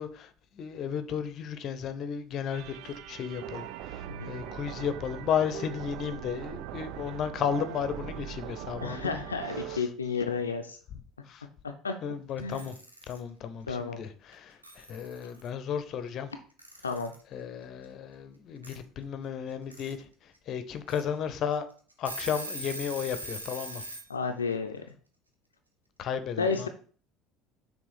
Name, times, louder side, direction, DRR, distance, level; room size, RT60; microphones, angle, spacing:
voice 1, 0.0-9.2 9.7-9.9 11.3-11.4 12.0-12.8 13.1-16.3 17.3-21.7 22.0-23.8 26.0-26.7, left 8 dB, 45° left, 0.7 m, -34 dB
sound 1, 2.5-9.8, right 11 dB, 55° right, 0.4 m, -40 dB
voice 2, 8.8-10.8 11.6-12.0 12.4-12.7 13.7-14.0 16.8-17.1 24.1-24.8 26.4-26.7, left 5 dB, 80° left, 0.4 m, -32 dB
Alarm / Clock, 12.4-13.2 14.3-14.4 14.6-15.5 16.6-17.2 18.6-18.7 19.5-19.9 20.3-20.4 20.9-21.0 21.5-21.6 21.9-24.1, right 1 dB, 85° right, 0.8 m, -40 dB
6.1 x 3.5 x 4.9 m
figure-of-eight pair, 65°, 0 cm